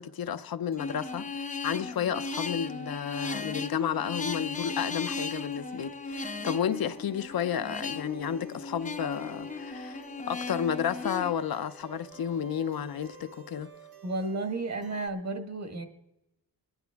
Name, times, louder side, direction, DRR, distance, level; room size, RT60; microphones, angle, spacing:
voice 1, 0.0-13.7, left 8 dB, 65° left, 0.6 m, -32 dB
sound 1, 0.7-15.1, right 5 dB, 65° right, 1.3 m, -53 dB
sound 2, 0.8-11.3, left 3 dB, 20° left, 0.6 m, -36 dB
Wind instrument woodwind instrument, 6.8-13.5, left 5 dB, 80° right, 4.7 m, -56 dB
voice 2, 14.0-15.9, right 2 dB, 45° right, 1.5 m, -32 dB
21.0 x 10.5 x 3.5 m
wide cardioid pair, 130°, 39 cm